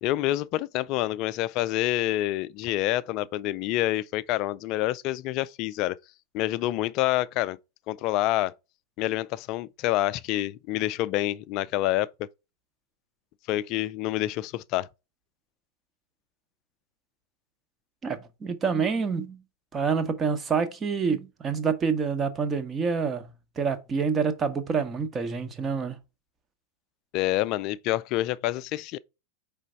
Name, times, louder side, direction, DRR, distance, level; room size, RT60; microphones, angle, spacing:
voice 1, 0.0-6.0 6.3-7.6 7.9-8.5 9.0-12.1 13.5-14.9 27.1-29.0, left 15 dB, 40° left, 0.3 m, -27 dB
voice 2, 18.0-19.4 19.7-26.0, right 5 dB, 20° right, 0.9 m, -27 dB
5.0 x 3.5 x 5.4 m
figure-of-eight pair, 90°, 0 cm